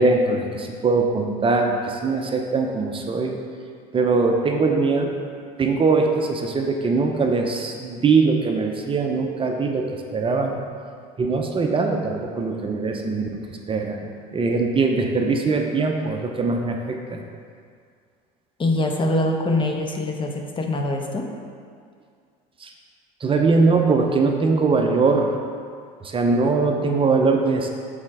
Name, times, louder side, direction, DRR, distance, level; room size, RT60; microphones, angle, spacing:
voice 1, 0.0-3.3 3.9-5.1 5.6-10.5 11.2-13.3 13.7-14.0 14.3-17.2 22.6-22.7 23.2-25.3 26.0-27.7, right 4 dB, 30° right, 2 dB, 0.6 m, -21 dB
voice 2, 18.6-21.3, left 1 dB, 25° left, 2 dB, 0.7 m, -23 dB
5.4 x 4.3 x 4.7 m, 2.1 s
supercardioid pair, 90°, 19 cm